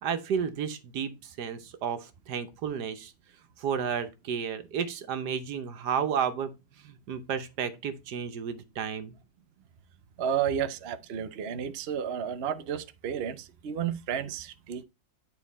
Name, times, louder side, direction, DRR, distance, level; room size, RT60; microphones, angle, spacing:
voice 1, 0.0-3.1 3.6-6.5 6.8-9.1, right 7 dB, 85° right, 1.5 m, -32 dB
voice 2, 10.2-14.8, right 8 dB, 50° right, 0.8 m, -32 dB
9.3 x 4.2 x 4.1 m
omnidirectional pair, 1.7 m